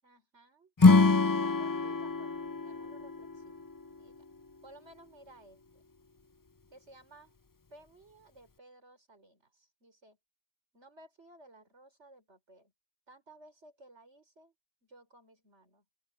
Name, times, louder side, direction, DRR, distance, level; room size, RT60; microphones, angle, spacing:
voice 1, 0.0-1.0 1.2-3.7 4.0-4.2 4.6-5.8 6.7-7.3 7.7-10.2 10.7-12.7 13.1-14.5 14.8-15.8, right 2 dB, 90° right, 6.0 m, -57 dB
Acoustic guitar / Strum, 0.8-4.1, left 3 dB, 35° left, 0.3 m, -25 dB
open air
omnidirectional pair, 1.1 m